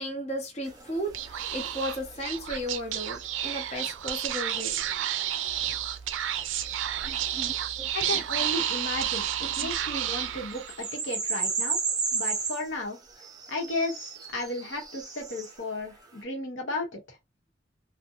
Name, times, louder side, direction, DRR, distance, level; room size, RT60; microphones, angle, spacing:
voice 1, 0.0-4.8, equal, 35° left, 0.6 m, -34 dB
sound 1, 0.6-2.2 2.6-3.5 7.0-8.7 9.5-9.7 10.1-10.2 10.5-15.6, right 5 dB, 20° right, 0.5 m, -34 dB
Speech / Whispering, 1.1-10.9, right 11 dB, 85° right, 0.4 m, -31 dB
voice 2, 7.9-11.8 12.1-13.0 13.5-17.2, left 2 dB, 85° left, 0.9 m, -34 dB
2.6 x 2.1 x 2.7 m
head